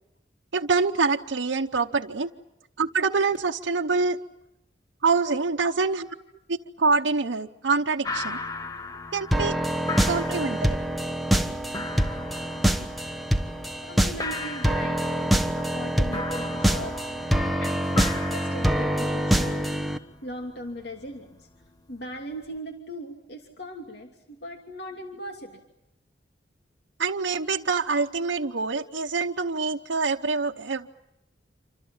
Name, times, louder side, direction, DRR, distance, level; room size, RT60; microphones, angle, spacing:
voice 1, 0.5-2.3 2.8-4.2 5.0-6.1 6.5-8.4 9.1-9.6 10.0-10.8 27.0-30.9, right 4 dB, 85° right, 1 dB, 0.9 m, -25 dB
sound 1, 8.0-22.6, left 3 dB, 20° left, 1.2 m, -38 dB
sound 2, 9.3-20.0, equal, ahead, 1.2 m, -25 dB
voice 2, 13.8-17.1 17.6-19.8 20.2-21.5 21.9-25.6, equal, 60° left, 3 dB, 2.9 m, -39 dB
28.5 x 25.5 x 7.2 m, 0.88 s
head